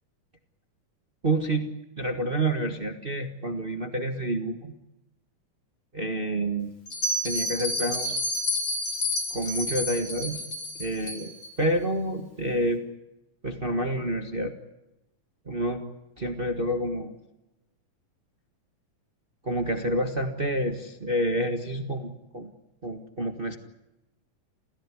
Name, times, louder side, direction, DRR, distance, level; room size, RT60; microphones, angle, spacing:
voice 1, 1.2-4.7 5.9-6.7 7.2-8.2 9.3-10.4 10.8-12.8 13.4-14.5 15.4-15.8 16.2-17.2 19.4-22.5 22.8-23.6, right 1 dB, 40° right, 7 dB, 0.8 m, -28 dB
Bell, 6.9-11.5, left 1 dB, 35° left, 5.6 m, -30 dB
29.5 x 16.5 x 9.8 m, 0.94 s
omnidirectional pair, 3.8 m